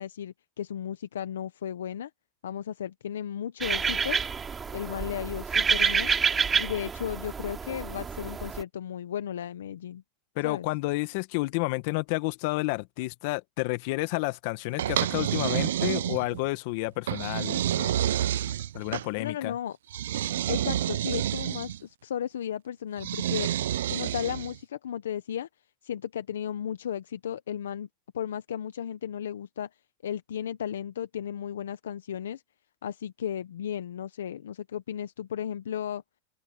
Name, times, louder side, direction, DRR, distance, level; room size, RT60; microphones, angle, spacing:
voice 1, 0.0-2.1 2.4-4.2 4.7-6.1 6.6-10.0 10.4-10.7 19.2-19.8 20.5-25.5 25.8-27.9 28.1-29.7 30.0-32.4 32.8-36.0, left 9 dB, 90° left, 0.9 m, -34 dB
sound 1, 3.6-8.6, right 6 dB, 20° right, 2.6 m, -28 dB
voice 2, 10.3-18.0 18.7-19.5, left 23 dB, 60° left, 1.5 m, -30 dB
sound 2, 14.8-16.5 17.1-19.1 19.9-21.8 23.0-24.6, right 11 dB, 80° right, 0.4 m, -29 dB
open air
hypercardioid pair, 110°, 0 cm